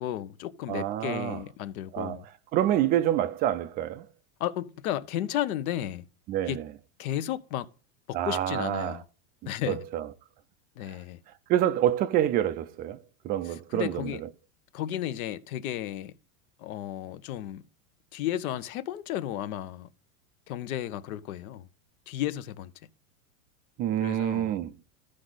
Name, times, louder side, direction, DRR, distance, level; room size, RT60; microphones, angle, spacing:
voice 1, 0.0-2.2 4.4-6.1 6.5-6.6 7.0-7.7 8.1-9.0 9.5-9.8 10.8-11.2 13.7-14.2 14.7-16.1 16.6-17.6 18.1-19.9 20.5-21.7 22.1-22.7 24.0-24.5, left 12 dB, 70° left, 0.9 m, -33 dB
voice 2, 0.7-1.4 1.9-4.1 6.3-6.7 8.1-9.0 9.7-10.1 10.9-11.0 11.5-14.3 23.8-24.7, right 12 dB, 25° right, 0.3 m, -27 dB
14.5 x 5.1 x 4.0 m
supercardioid pair, 135°, 44 cm